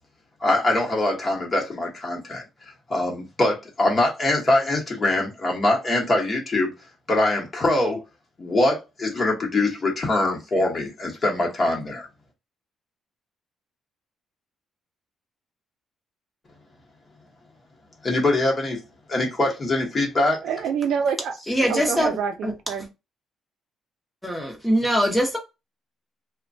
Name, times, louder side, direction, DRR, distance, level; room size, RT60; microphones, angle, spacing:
voice 1, 0.4-2.4 2.9-6.7 7.1-8.0 8.4-12.1 18.0-18.8 19.1-20.4, left 2 dB, 25° left, 1.0 m, -23 dB
voice 2, 20.4-21.4 21.7-22.9, right 7 dB, 65° right, 0.4 m, -26 dB
voice 3, 21.5-22.2 22.4-22.5 24.2-25.4, equal, 5° left, 0.8 m, -22 dB
3.1 x 2.2 x 2.6 m
cardioid pair, 165°, 0 cm